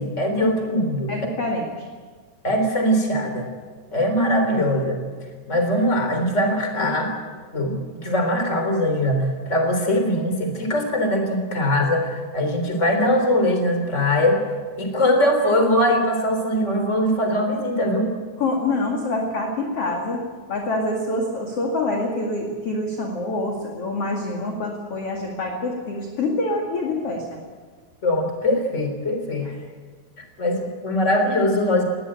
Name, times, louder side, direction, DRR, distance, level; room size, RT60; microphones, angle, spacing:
voice 1, 0.0-1.3 2.4-3.5 3.9-5.0 5.5-7.1 7.5-14.4 14.8-18.1 28.0-29.5 30.4-31.8, left 1 dB, 15° left, 5 dB, 3.2 m, -21 dB
voice 2, 1.1-1.7 18.4-20.2 20.5-27.4 29.4-29.5, left 2 dB, 45° left, 0 dB, 2.2 m, -26 dB
20.5 x 18.0 x 8.8 m, 1.5 s
omnidirectional pair, 5.7 m